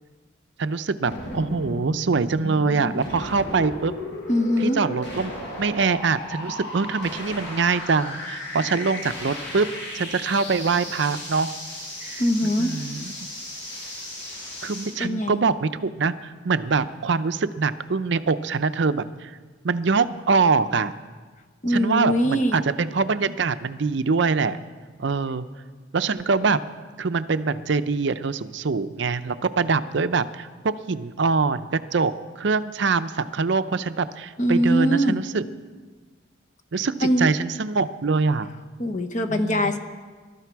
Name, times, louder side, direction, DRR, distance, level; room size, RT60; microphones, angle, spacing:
voice 1, 0.6-3.9 4.6-5.3 5.6-9.7 9.9-11.5 12.0-12.2 12.6-13.1 14.6-19.4 19.6-20.9 21.7-24.6 25.0-25.5 25.9-26.6 27.0-31.7 31.9-35.4 36.7-38.5 39.3-39.7, right 4 dB, 60° right, 12 dB, 0.5 m, -24 dB
sound 1, 1.0-15.0, left 1 dB, 55° left, 6.3 m, -35 dB
voice 2, 4.3-4.8 12.2-12.7 15.0-15.4 21.6-22.6 34.4-35.2 37.0-37.3 38.8-39.8, equal, 35° left, 7 dB, 1.0 m, -22 dB
22.5 x 12.5 x 4.6 m, 1.4 s
head